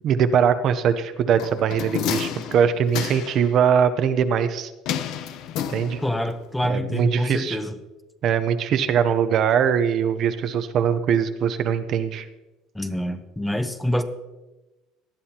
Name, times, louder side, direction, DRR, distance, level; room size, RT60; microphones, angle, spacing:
voice 1, 0.0-4.7 5.7-6.0 6.6-7.6 8.2-12.3, right 7 dB, 45° right, 10 dB, 0.7 m, -21 dB
sound 1, 1.4-3.5 4.9-6.3 6.6-6.7, left 9 dB, 60° left, 0.8 m, -30 dB
voice 2, 6.0-7.8 12.7-14.0, left 1 dB, 5° left, 9 dB, 0.7 m, -26 dB
18.5 x 12.0 x 2.9 m, 1.1 s
cardioid pair, 150°, 0 cm